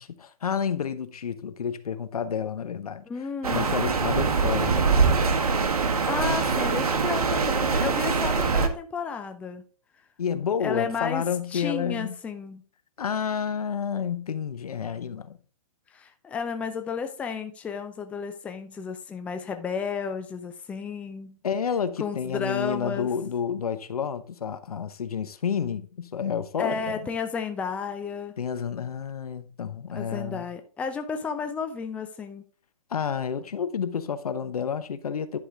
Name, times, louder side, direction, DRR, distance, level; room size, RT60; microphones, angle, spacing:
voice 1, 0.0-3.0 3.5-4.9 10.2-12.2 13.0-15.4 21.4-27.1 28.4-30.5 32.9-35.4, left 7 dB, 85° left, 0.9 m, -30 dB
voice 2, 3.1-3.7 5.8-9.6 10.6-11.2 11.5-12.6 15.9-21.4 22.0-23.1 26.6-28.3 29.9-32.4, left 6 dB, 5° left, 0.5 m, -32 dB
sound 1, 3.4-8.7, right 4 dB, 85° right, 1.2 m, -23 dB
10.5 x 4.9 x 3.6 m
hypercardioid pair, 145°, 19 cm